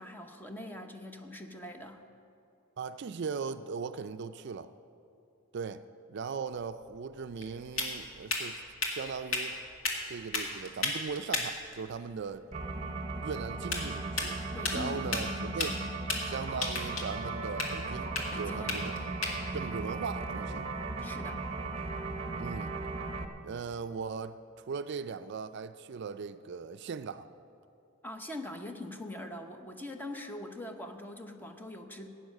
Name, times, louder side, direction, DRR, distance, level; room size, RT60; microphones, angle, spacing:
voice 1, 0.0-2.1 14.5-15.9 18.3-18.8 21.0-21.4 28.0-32.1, left 1 dB, 10° left, 0.8 m, -42 dB
voice 2, 2.8-4.7 5.5-5.8 6.1-8.6 8.9-9.6 10.1-12.5 13.2-14.4 14.7-15.7 16.2-19.0 19.5-20.7 22.4-22.8 23.4-27.3, right 5 dB, 55° right, 0.4 m, -38 dB
sound 1, 6.5-21.2, left 3 dB, 75° left, 2.1 m, -37 dB
sound 2, 12.5-23.2, right 3 dB, 30° right, 0.8 m, -37 dB
15.5 x 9.3 x 6.4 m
head